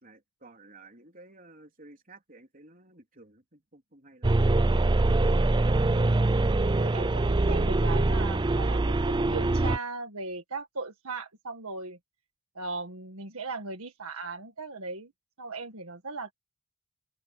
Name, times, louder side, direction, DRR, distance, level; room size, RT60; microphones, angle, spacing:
voice 1, 0.0-4.4, right 2 dB, 40° right, 3.8 m, -53 dB
sound 1, 4.2-9.8, right 2 dB, 20° right, 0.4 m, -24 dB
voice 2, 6.8-12.0 12.5-15.1 15.4-16.3, right 3 dB, 75° right, 1.7 m, -38 dB
open air
head